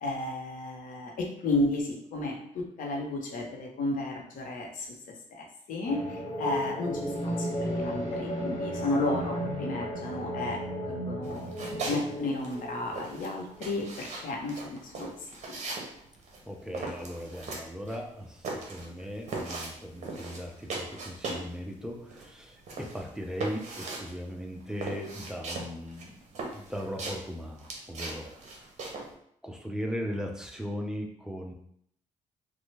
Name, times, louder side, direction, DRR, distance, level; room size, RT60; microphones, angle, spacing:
voice 1, 0.0-5.0 5.3-11.4 11.8-15.8, left 2 dB, 80° left, 1 dB, 0.7 m, -33 dB
sound 1, 5.9-13.8, equal, 35° left, 1.0 m, -34 dB
sound 2, 11.2-12.1 12.3-21.6 21.8-29.1, right 3 dB, 55° right, 0.7 m, -39 dB
voice 2, 16.5-26.2 26.5-28.3 29.4-31.5, equal, 5° right, 1 dB, 0.4 m, -38 dB
3.2 x 2.1 x 3.2 m, 0.69 s
cardioid pair, 115°, 14 cm